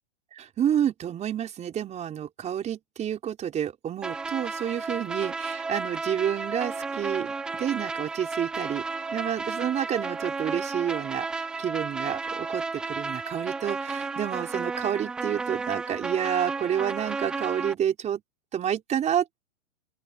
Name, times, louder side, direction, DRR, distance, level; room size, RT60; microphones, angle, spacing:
voice 1, 0.3-7.3 7.6-8.8 9.1-18.2 18.5-19.4, right 9 dB, 20° right, 5.2 m, -29 dB
sound 1, 4.0-17.7, right 4 dB, ahead, 0.4 m, -33 dB
open air
hypercardioid pair, 145°, 38 cm